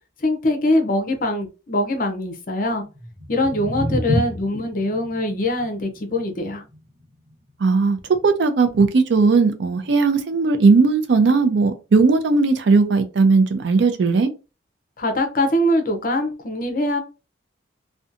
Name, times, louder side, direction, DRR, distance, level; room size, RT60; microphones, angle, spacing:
voice 1, 0.2-2.8 3.3-6.6 15.0-17.0, left 1 dB, 45° left, 0.5 m, -22 dB
sound 1, 2.9-9.0, equal, 35° right, 0.9 m, -31 dB
voice 2, 7.6-8.0 8.2-14.3, right 4 dB, 65° right, 0.4 m, -17 dB
2.6 x 2.2 x 2.5 m
head